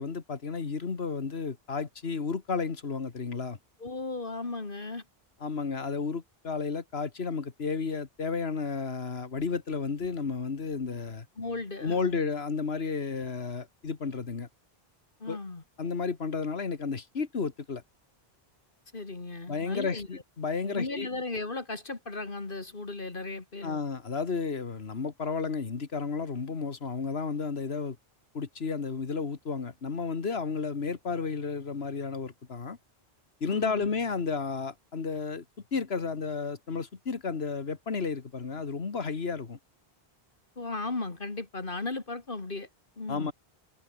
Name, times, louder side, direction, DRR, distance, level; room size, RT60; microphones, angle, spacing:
voice 1, 0.0-3.6 5.4-11.3 11.8-14.5 15.3-15.4 15.8-17.8 19.5-21.1 23.6-28.0 28.3-32.8 33.4-35.4 35.7-39.6 43.1-43.3, left 5 dB, 85° left, 1.9 m, -32 dB
voice 2, 3.8-5.0 11.4-12.2 15.2-15.6 18.9-20.1 20.6-23.8 33.5-33.9 40.6-42.7 43.0-43.3, left 3 dB, 60° left, 2.5 m, -36 dB
omnidirectional pair, 1.0 m